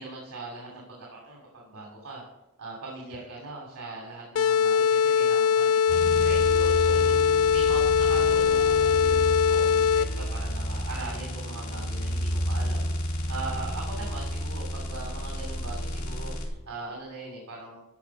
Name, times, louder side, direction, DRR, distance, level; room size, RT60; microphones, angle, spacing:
voice 1, 0.0-2.2 2.6-17.8, right 2 dB, 75° right, -2 dB, 2.8 m, -40 dB
sound 1, 4.3-10.3, left 7 dB, 60° left, 0.4 m, -22 dB
sound 2, 5.9-16.5, equal, 80° left, 3.1 m, -31 dB
13.0 x 5.4 x 6.1 m, 0.93 s
head